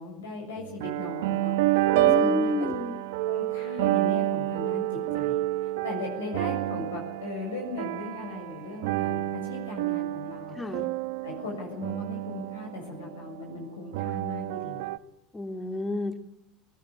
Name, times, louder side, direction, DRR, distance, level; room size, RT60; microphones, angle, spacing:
voice 1, 0.0-2.5 3.3-10.6 11.2-14.9, left 3 dB, 80° left, 0 dB, 7.1 m, -38 dB
sound 1, 0.6-13.4 13.9-15.0, right 15 dB, 70° right, 1.1 m, -29 dB
voice 2, 1.9-3.0 10.5-10.9 15.3-16.2, left 2 dB, 20° left, 6 dB, 3.1 m, -30 dB
20.5 x 18.5 x 9.9 m, 0.91 s
hypercardioid pair, 75°, 0 cm